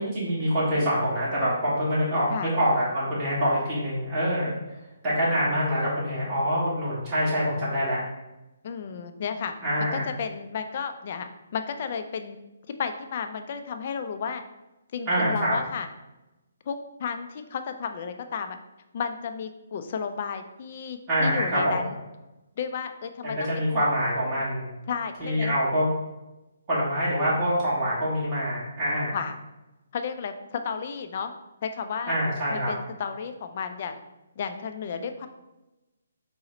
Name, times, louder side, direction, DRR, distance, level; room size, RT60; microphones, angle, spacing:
voice 1, 0.0-4.5 5.0-8.0 9.6-10.1 15.1-15.6 21.1-21.8 23.2-24.7 25.2-25.8 26.7-29.2 32.1-32.7, equal, 20° right, -9 dB, 1.4 m, -25 dB
voice 2, 8.6-9.5 9.8-12.4 12.8-14.4 14.9-15.9 16.7-18.6 18.9-21.9 22.6-23.8 24.9-25.6 29.1-29.4 29.9-31.3 31.6-32.2 32.5-34.0 34.4-35.3, left 6 dB, 40° left, 7 dB, 0.3 m, -33 dB
4.0 x 2.0 x 3.8 m, 1.0 s
hypercardioid pair, 160°, 0 cm